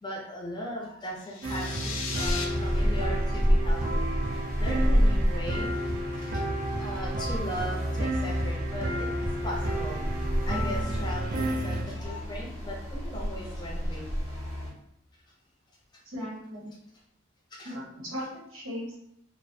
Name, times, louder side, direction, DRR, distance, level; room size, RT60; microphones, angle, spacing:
voice 1, 0.0-4.0 4.6-5.7 6.1-6.3 6.8-9.1 9.4-10.0 10.4-14.6 17.5-17.7, equal, 20° left, -2 dB, 0.5 m, -38 dB
sound 1, 1.2-2.4, left 5 dB, 75° left, 0.4 m, -36 dB
sound 2, 1.4-11.8, right 1 dB, 45° right, 0.4 m, -32 dB
sound 3, 2.2-14.7, equal, 20° right, 0.8 m, -29 dB
voice 2, 16.1-16.7 17.6-19.0, equal, 85° right, -2 dB, 0.8 m, -37 dB
2.3 x 2.1 x 2.6 m, 0.72 s
head